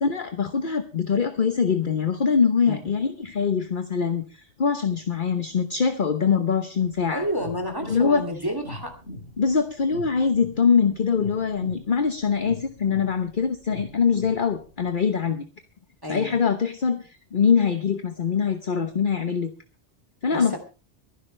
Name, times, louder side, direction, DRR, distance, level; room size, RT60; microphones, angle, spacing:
voice 1, 0.0-4.3 4.6-7.2 7.9-8.2 9.4-15.4 16.1-19.5 20.2-20.6, left 6 dB, 50° left, 8 dB, 1.2 m, -23 dB
sound 1, 6.9-14.9, left 1 dB, 65° left, 3.4 m, -41 dB
voice 2, 7.1-8.9 16.0-16.4 20.3-20.6, equal, 20° right, 5 dB, 2.6 m, -30 dB
24.0 x 11.0 x 3.3 m, 0.33 s
omnidirectional pair, 1.2 m